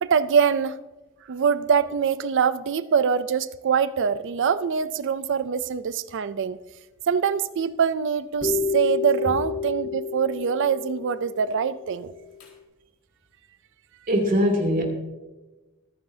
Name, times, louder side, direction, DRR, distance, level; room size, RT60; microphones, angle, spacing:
voice 1, 0.0-0.8 1.3-6.6 7.1-12.1, right 6 dB, 60° right, 15 dB, 0.4 m, -24 dB
sound 1, 8.4-12.5, left 5 dB, 70° left, 4.5 m, -30 dB
voice 2, 14.1-14.8, equal, 40° right, 1 dB, 2.8 m, -21 dB
25.0 x 9.6 x 2.8 m, 1.1 s
head